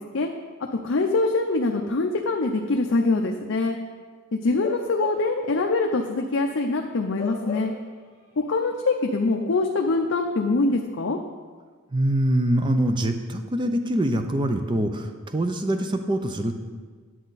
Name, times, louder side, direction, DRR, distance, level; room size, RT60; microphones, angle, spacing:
voice 1, 0.8-3.8 4.3-7.7 8.4-11.2, left 3 dB, 60° left, 2 dB, 0.6 m, -24 dB
Bark / Livestock farm animals working animals, 4.5-5.4 5.9-6.0 7.2-8.0 8.3-8.5, left 4 dB, 25° left, 1.7 m, -37 dB
voice 2, 11.9-16.6, right 1 dB, 20° right, 7 dB, 0.5 m, -24 dB
10.0 x 7.5 x 4.0 m, 1.5 s
head